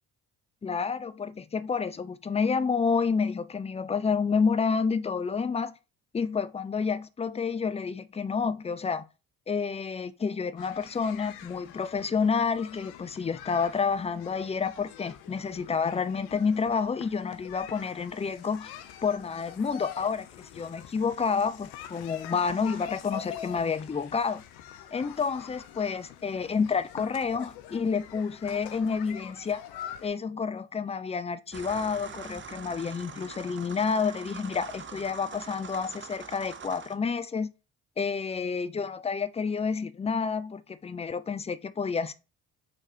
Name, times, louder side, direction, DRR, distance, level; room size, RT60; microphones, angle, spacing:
voice 1, 0.6-5.7 6.1-9.0 9.5-18.7 19.0-24.4 24.9-29.6 30.0-37.5 38.0-42.1, left 5 dB, 15° left, 0.4 m, -29 dB
sound 1, 10.6-30.1, left 10 dB, 70° left, 0.7 m, -45 dB
sound 2, 31.5-36.9, right 6 dB, 30° right, 0.7 m, -44 dB
4.0 x 3.9 x 3.0 m
hypercardioid pair, 45°, 40 cm